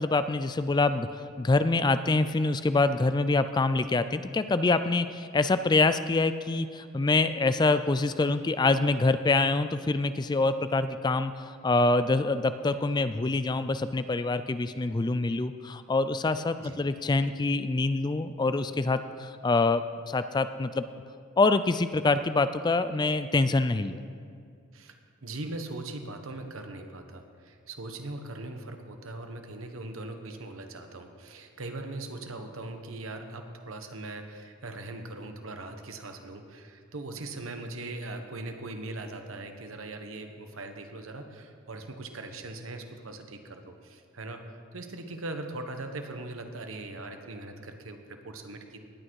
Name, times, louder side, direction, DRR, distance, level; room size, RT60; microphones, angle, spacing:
voice 1, 0.0-20.9 21.4-24.0, left 3 dB, 20° left, 12 dB, 0.3 m, -25 dB
voice 2, 25.2-44.4 44.7-48.8, right 2 dB, 80° right, 5 dB, 1.2 m, -40 dB
19.0 x 8.8 x 4.8 m, 2.3 s
head